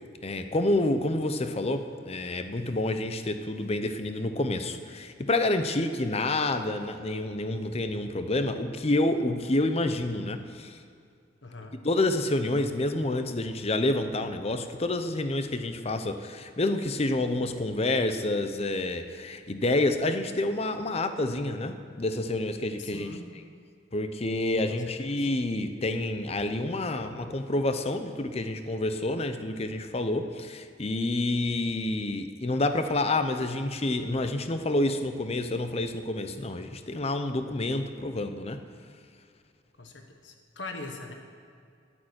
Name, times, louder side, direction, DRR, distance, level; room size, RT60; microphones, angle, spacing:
voice 1, 0.2-10.8 11.8-23.1 23.9-38.6, left 2 dB, 35° left, 8 dB, 0.7 m, -28 dB
voice 2, 11.4-11.8 22.8-23.3 24.7-24.8 25.2-25.3 39.8-41.1, left 2 dB, 80° left, 4 dB, 1.3 m, -41 dB
11.0 x 8.9 x 9.6 m, 2.3 s
head